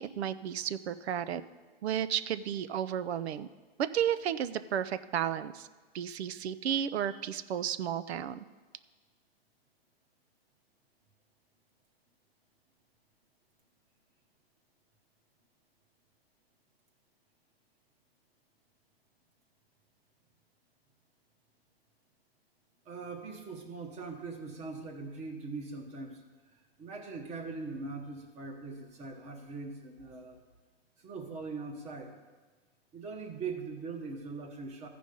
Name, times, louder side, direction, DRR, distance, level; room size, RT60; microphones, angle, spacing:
voice 1, 0.0-1.4 1.8-3.5 3.8-5.7 5.9-8.4, right 9 dB, 85° right, 14 dB, 0.5 m, -33 dB
voice 2, 22.8-26.2 26.5-30.4 31.0-32.1 32.9-34.9, right 4 dB, 20° right, 4 dB, 1.1 m, -41 dB
15.0 x 5.1 x 5.2 m, 1.4 s
hypercardioid pair, 150°, 31 cm